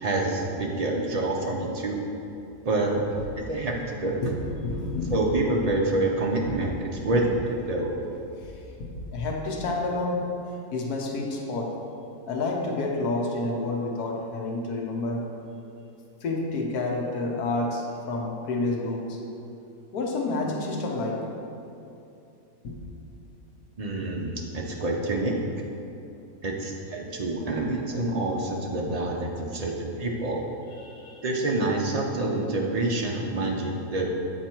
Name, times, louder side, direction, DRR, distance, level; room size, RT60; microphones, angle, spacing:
voice 1, 0.0-2.0 2.6-2.9 3.4-4.1 5.1-6.7 7.0-7.2 7.7-7.9 23.8-25.3 26.4-30.4 31.2-34.1, right 2 dB, 80° right, -1 dB, 0.3 m, -27 dB
voice 2, 4.1-5.2 6.4-6.6 6.9-7.1 8.4-8.6 8.9-10.3 10.7-11.9 12.3-15.3 16.2-19.2 19.9-21.3 22.6-22.8 24.0-24.1 30.8-31.2, left 2 dB, 80° left, 0 dB, 1.5 m, -29 dB
7.9 x 4.6 x 4.4 m, 2.8 s
omnidirectional pair, 1.6 m